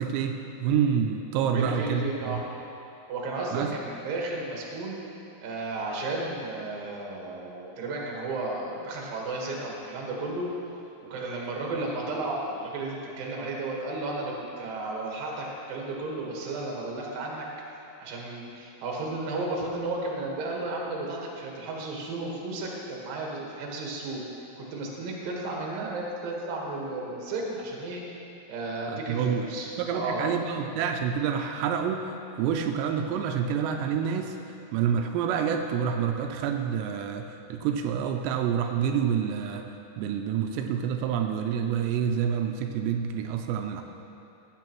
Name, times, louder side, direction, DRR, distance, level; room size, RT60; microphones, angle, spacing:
voice 1, 0.0-2.4 3.5-3.7 28.9-29.5 29.8-32.1 32.4-34.4 34.7-39.7 40.0-43.8, right 7 dB, 90° right, 4 dB, 2.8 m, -28 dB
voice 2, 1.5-2.4 3.1-5.0 5.4-10.5 11.1-17.5 18.0-24.2 24.6-28.0 28.5-30.3, right 2 dB, 65° right, -2 dB, 2.9 m, -33 dB
15.0 x 9.6 x 3.0 m, 2.8 s
omnidirectional pair, 4.9 m